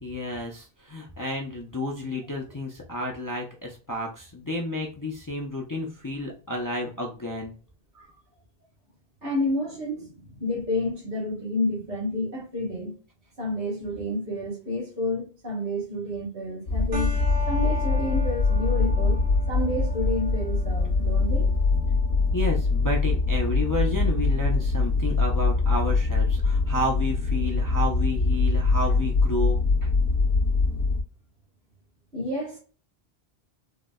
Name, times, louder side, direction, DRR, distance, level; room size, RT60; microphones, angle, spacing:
voice 1, 0.0-7.5 22.3-29.9, left 1 dB, 35° left, 0.3 m, -31 dB
voice 2, 9.2-12.9 13.4-17.1 17.5-19.2 19.5-21.5 32.1-32.6, left 1 dB, 55° right, 1.4 m, -30 dB
sound 1, 16.7-31.0, left 3 dB, 60° left, 0.8 m, -23 dB
sound 2, 16.9-25.9, left 2 dB, 40° right, 0.9 m, -40 dB
3.7 x 2.0 x 2.2 m
omnidirectional pair, 1.0 m